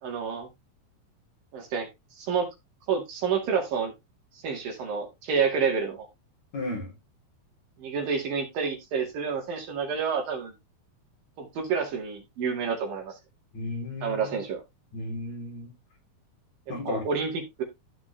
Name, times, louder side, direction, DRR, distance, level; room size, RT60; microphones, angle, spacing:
voice 1, 0.0-0.5 1.5-1.9 2.2-2.5 2.9-3.9 4.4-6.1 7.8-10.5 11.4-13.1 14.0-14.6 16.8-17.6, right 6 dB, 65° right, 3.8 m, -29 dB
voice 2, 6.5-6.9 13.5-14.2 14.9-15.7 16.7-17.1, left 2 dB, 45° left, 4.7 m, -34 dB
14.0 x 5.1 x 3.3 m
omnidirectional pair, 4.4 m